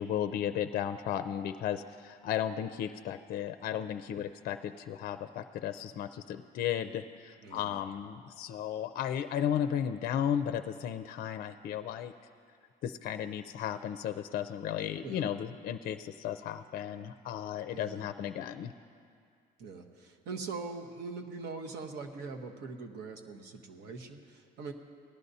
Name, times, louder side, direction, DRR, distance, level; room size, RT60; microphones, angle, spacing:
voice 1, 0.0-12.1 12.8-18.7, left 9 dB, 60° left, 10 dB, 0.4 m, -34 dB
voice 2, 7.4-7.8 15.0-15.2 17.7-18.0 19.6-24.7, right 4 dB, 75° right, 3 dB, 1.1 m, -42 dB
18.0 x 11.0 x 2.7 m, 2.3 s
cardioid pair, 110°, 17 cm